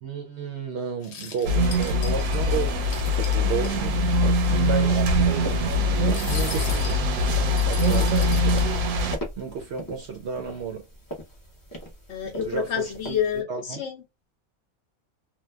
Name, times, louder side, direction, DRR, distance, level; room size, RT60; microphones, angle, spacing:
voice 1, 0.0-2.8 3.3-7.0 7.7-8.8 9.4-10.8 12.4-13.2 13.5-13.8, right 6 dB, 65° right, 0.7 m, -33 dB
sound 1, 1.0-3.7 4.1-4.2 4.4-4.6 6.0-9.1, left 6 dB, 85° left, 1.2 m, -39 dB
sound 2, 1.4-9.2, left 1 dB, 80° right, 1.0 m, -22 dB
sound 3, 2.6-13.4, equal, 25° left, 0.4 m, -41 dB
voice 2, 12.1-14.0, left 8 dB, 65° left, 0.8 m, -28 dB
2.8 x 2.2 x 2.2 m
omnidirectional pair, 1.5 m